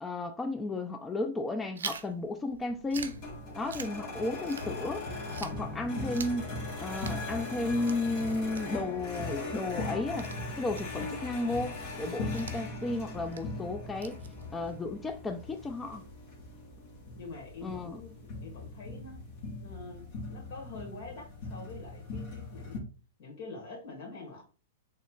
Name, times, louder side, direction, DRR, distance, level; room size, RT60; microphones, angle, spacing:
voice 1, 0.0-3.2 3.5-5.0 5.4-6.5 6.8-10.3 10.6-14.2 14.5-16.0 17.6-18.0, left 2 dB, 15° left, 0.3 m, -33 dB
Chewing mastication, 1.8-5.0 5.3-14.8, right 6 dB, 90° right, 0.5 m, -46 dB
sound 1, 2.9-22.8, left 2 dB, 45° left, 1.2 m, -39 dB
voice 2, 17.1-19.2 19.6-22.8 23.2-24.4, left 3 dB, 60° left, 1.6 m, -45 dB
4.1 x 3.1 x 2.3 m
hypercardioid pair, 120°, 0 cm